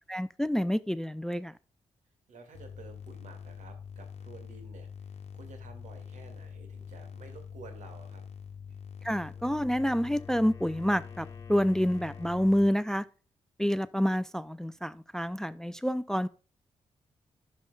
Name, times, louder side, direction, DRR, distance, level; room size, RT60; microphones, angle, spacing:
voice 1, 0.1-1.5 9.0-13.0 13.6-16.3, equal, 5° left, 0.4 m, -28 dB
voice 2, 2.3-8.2 8.7-8.8, right 4 dB, 70° right, 2.2 m, -51 dB
sound 1, 2.5-12.7, left 7 dB, 55° left, 1.1 m, -45 dB
Wind instrument woodwind instrument, 9.2-13.1, left 4 dB, 25° left, 1.6 m, -54 dB
12.0 x 5.3 x 2.3 m
supercardioid pair, 45°, 13 cm